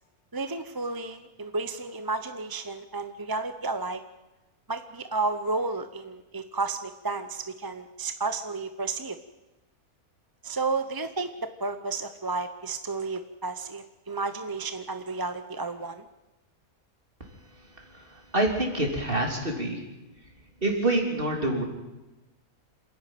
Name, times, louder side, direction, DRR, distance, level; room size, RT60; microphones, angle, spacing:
voice 1, 0.3-4.0 4.7-9.2 10.4-11.3 11.6-16.0, right 3 dB, 20° right, 9 dB, 0.6 m, -32 dB
voice 2, 17.5-19.8 20.6-21.6, right 1 dB, 35° right, 2 dB, 3.7 m, -27 dB
27.0 x 10.5 x 9.3 m, 1.0 s
omnidirectional pair, 1.5 m